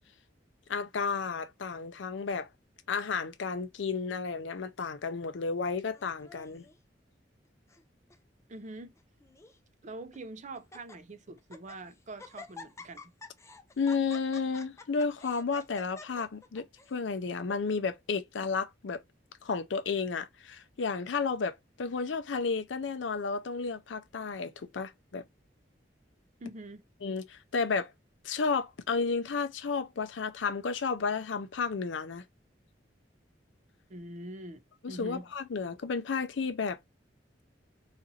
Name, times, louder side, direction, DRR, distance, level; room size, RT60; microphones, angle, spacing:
voice 1, 0.7-2.5 2.9-6.7 13.8-19.0 19.4-25.2 27.0-27.9 28.2-32.2 34.8-36.8, left 5 dB, 75° left, 0.5 m, -32 dB
Laughter, 5.9-6.8 7.5-7.8 8.1-8.2 9.0-9.6 10.1-10.2 10.6-11.0 11.4-11.8 12.2-17.0, left 3 dB, 15° left, 0.4 m, -49 dB
voice 2, 8.5-8.9 9.8-13.1 26.4-26.8 33.9-35.3, right 2 dB, 40° right, 0.5 m, -44 dB
3.9 x 2.5 x 2.7 m
head